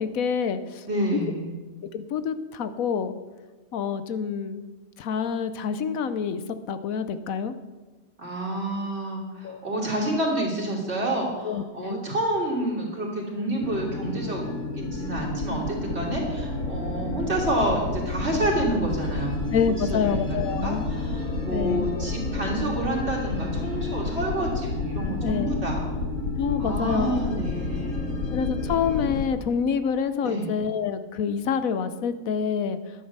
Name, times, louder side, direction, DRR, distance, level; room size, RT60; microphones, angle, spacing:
voice 1, 0.0-0.8 1.1-1.2 1.9-3.1 3.7-4.6 5.0-6.4 6.7-7.5 9.4-9.6 11.4-12.1 19.5-20.9 21.5-21.9 25.2-25.6 26.4-27.4 28.3-32.8, left 6 dB, 80° left, 11 dB, 1.2 m, -27 dB
voice 2, 0.8-1.5 8.2-14.5 14.8-19.5 19.9-25.9 26.6-28.2 30.2-30.5, right 1 dB, 50° right, -2 dB, 3.3 m, -29 dB
sound 1, 13.6-29.3, left 3 dB, 65° left, 1.6 m, -30 dB
11.5 x 9.8 x 6.7 m, 1.2 s
omnidirectional pair, 1.4 m